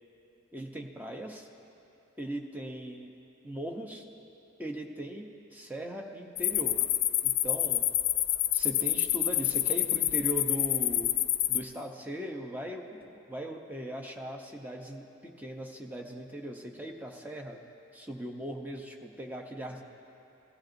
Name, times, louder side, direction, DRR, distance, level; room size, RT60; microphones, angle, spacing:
voice 1, 0.5-1.5 2.2-3.1 3.4-4.0 4.6-6.9 7.2-7.8 8.5-11.1 11.5-17.6 17.9-19.8, right 1 dB, 10° right, 1 dB, 0.7 m, -39 dB
sound 1, 6.4-11.6, left 13 dB, 85° left, 0.5 m, -28 dB
18.0 x 13.5 x 2.6 m, 3.0 s
head